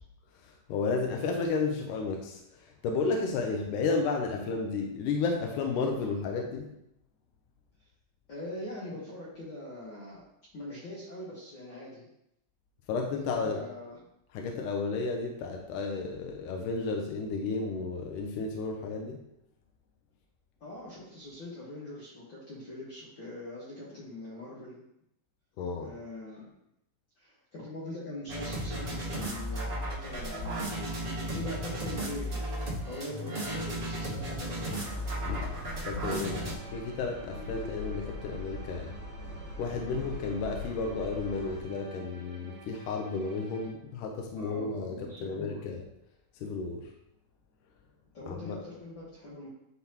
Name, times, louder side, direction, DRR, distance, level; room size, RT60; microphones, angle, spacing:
voice 1, 0.4-6.7 12.9-13.6 14.3-19.2 25.6-25.9 35.8-38.9 39.6-45.8 46.4-46.9 48.3-48.6, left 4 dB, 85° left, 2 dB, 2.3 m, -32 dB
voice 2, 8.3-10.3 10.5-12.1 13.2-14.0 20.6-24.8 25.8-26.5 27.2-32.4 32.8-34.6 44.4-45.6 48.1-49.5, left 1 dB, 50° left, -7 dB, 1.5 m, -42 dB
sound 1, 28.3-36.5, right 1 dB, 80° right, 0.4 m, -35 dB
sound 2, 34.6-41.6, left 3 dB, 65° left, 2.4 m, -41 dB
sound 3, 36.3-43.7, right 4 dB, 65° right, 2.2 m, -50 dB
10.5 x 4.0 x 2.9 m, 0.82 s
omnidirectional pair, 3.7 m